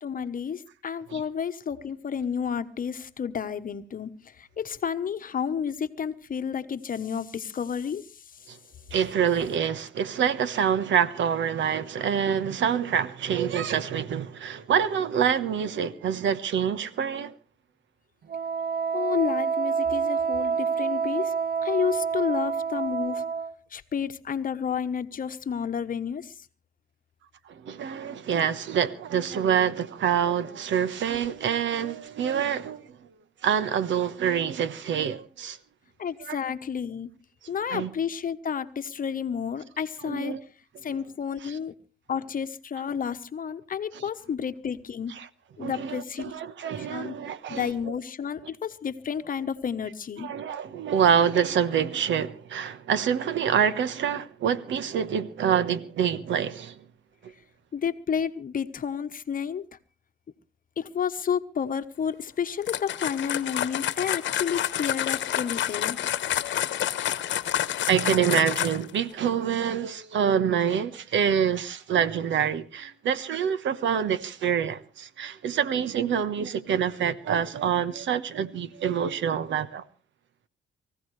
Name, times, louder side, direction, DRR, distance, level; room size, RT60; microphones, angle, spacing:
voice 1, 0.0-8.4 18.9-21.3 21.6-23.2 23.7-26.5 36.0-37.1 37.5-40.3 40.8-41.7 42.1-45.1 45.6-46.3 46.8-47.2 47.5-50.3 57.7-59.7 60.8-66.0, left 7 dB, 45° left, 1.1 m, -31 dB
voice 2, 8.9-17.3 27.5-32.9 33.4-35.6 36.2-36.4 37.7-37.9 40.0-40.4 41.4-41.6 45.2-45.3 45.6-47.6 50.2-56.8 57.2-57.3 67.9-79.8, right 8 dB, 70° right, 1.2 m, -26 dB
Wind instrument woodwind instrument, 18.3-23.5, right 6 dB, 55° right, 0.8 m, -27 dB
sound 1, 62.6-69.0, left 11 dB, 70° left, 1.1 m, -28 dB
24.0 x 15.5 x 3.3 m
cardioid pair, 90°, 20 cm